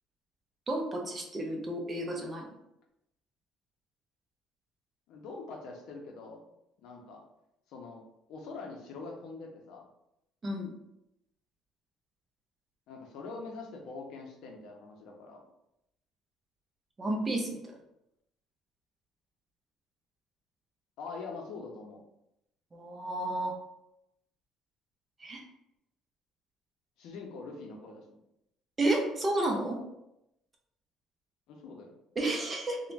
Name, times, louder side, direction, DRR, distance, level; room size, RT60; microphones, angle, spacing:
voice 1, 0.7-2.5 10.4-10.8 17.0-17.6 22.7-23.6 25.2-25.4 28.8-29.8 32.2-32.8, right 1 dB, 20° right, 2 dB, 0.4 m, -31 dB
voice 2, 5.1-6.5 6.8-7.2 7.7-8.0 8.3-9.9 12.9-15.4 21.0-22.0 27.0-28.2 31.5-31.9, left 3 dB, 70° left, 2 dB, 0.5 m, -44 dB
2.5 x 2.1 x 3.1 m, 0.84 s
cardioid pair, 155°, 0 cm